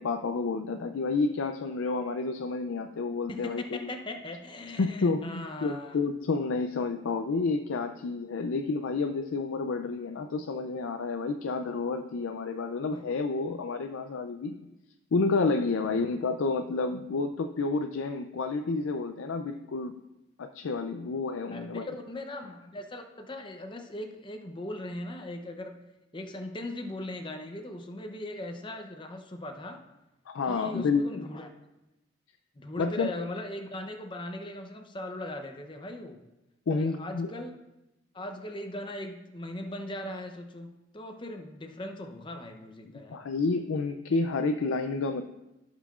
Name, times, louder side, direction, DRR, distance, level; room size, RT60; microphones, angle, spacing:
voice 1, 0.0-3.9 4.8-14.6 15.1-20.0 20.4-21.9 30.3-31.2 32.8-33.1 36.7-37.3 43.1-45.2, left 4 dB, 85° left, 7 dB, 0.4 m, -30 dB
voice 2, 3.3-6.0 12.8-13.0 15.9-16.1 21.5-25.8 26.1-29.8 30.5-31.5 32.6-36.2 36.7-37.5 38.1-43.2, left 1 dB, 25° left, 5 dB, 0.6 m, -39 dB
16.0 x 5.7 x 2.4 m, 0.97 s
head